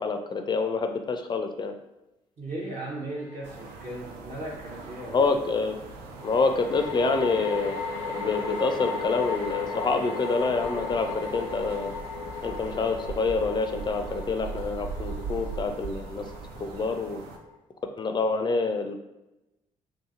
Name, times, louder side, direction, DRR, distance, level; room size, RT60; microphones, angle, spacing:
voice 1, 0.0-1.7 5.1-5.9 6.2-7.8 8.1-11.9 12.4-16.3 16.6-17.2 18.0-18.9, left 4 dB, 25° left, 6 dB, 0.4 m, -27 dB
voice 2, 2.4-5.3, right 1 dB, 40° right, -5 dB, 0.7 m, -37 dB
sound 1, 3.2-3.3 6.2-17.6, left 5 dB, 85° left, 0.5 m, -36 dB
sound 2, 3.4-17.4, right 4 dB, 65° right, 0.4 m, -40 dB
2.8 x 2.5 x 2.4 m, 0.94 s
figure-of-eight pair, 45°, 18 cm